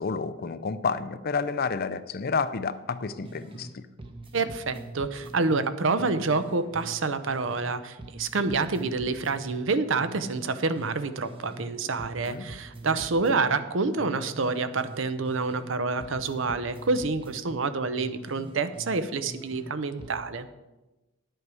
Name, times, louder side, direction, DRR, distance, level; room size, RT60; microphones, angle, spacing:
voice 1, 0.0-3.9 12.3-12.4, left 5 dB, 45° left, 13 dB, 0.5 m, -30 dB
sound 1, 3.2-3.7 4.0-7.7 8.0-11.7 12.0-15.7 16.0-19.7 20.0-20.2, right 2 dB, 25° right, 0.9 m, -44 dB
voice 2, 4.3-20.5, right 3 dB, 65° right, 12 dB, 0.7 m, -28 dB
10.5 x 7.9 x 4.8 m, 1.1 s
head